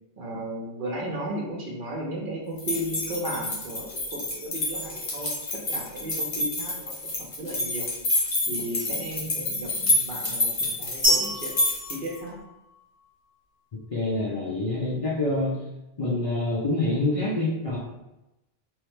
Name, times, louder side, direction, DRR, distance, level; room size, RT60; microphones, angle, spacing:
voice 1, 0.2-5.3 5.7-7.9 8.5-11.5 11.9-12.4, right 1 dB, 60° right, -2 dB, 0.7 m, -34 dB
sound 1, 2.6-12.2, left 2 dB, 75° left, 1.1 m, -28 dB
sound 2, 11.0-13.0, equal, 15° right, 0.6 m, -27 dB
voice 2, 13.9-15.6 16.0-17.8, left 2 dB, 45° left, -6 dB, 0.4 m, -26 dB
2.9 x 2.0 x 3.1 m, 0.93 s
omnidirectional pair, 1.1 m